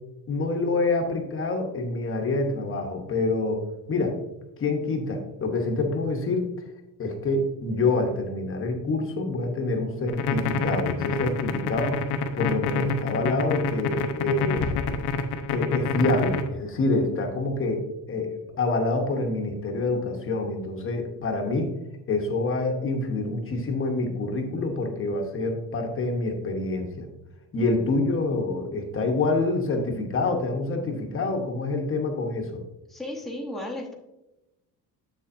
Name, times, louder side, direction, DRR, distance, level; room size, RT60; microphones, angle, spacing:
voice 1, 0.3-3.6 3.9-4.2 4.6-6.4 7.0-12.0 12.3-14.8 15.5-17.8 18.1-21.7 22.1-27.1 27.5-32.6, left 2 dB, 30° left, 3 dB, 1.0 m, -26 dB
sound 1, 10.1-16.5, left 4 dB, 70° left, 0.8 m, -27 dB
voice 2, 32.9-33.9, left 1 dB, ahead, -1 dB, 0.9 m, -34 dB
7.8 x 7.0 x 2.6 m, 0.95 s
cardioid pair, 160°, 40 cm